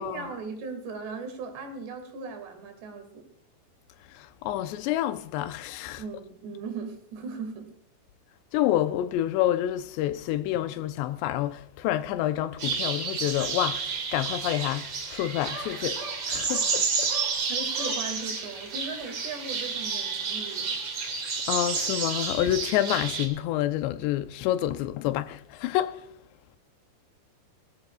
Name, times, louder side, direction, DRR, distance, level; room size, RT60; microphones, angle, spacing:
voice 1, 0.0-3.3 6.0-7.7 17.5-20.8, right 4 dB, 75° right, 4.4 m, -38 dB
voice 2, 4.1-6.0 8.5-17.1 21.5-26.1, left 13 dB, 85° left, 2.9 m, -28 dB
sound 1, 12.6-23.3, right 5 dB, 40° right, 2.3 m, -30 dB
19.0 x 15.0 x 2.4 m
omnidirectional pair, 4.9 m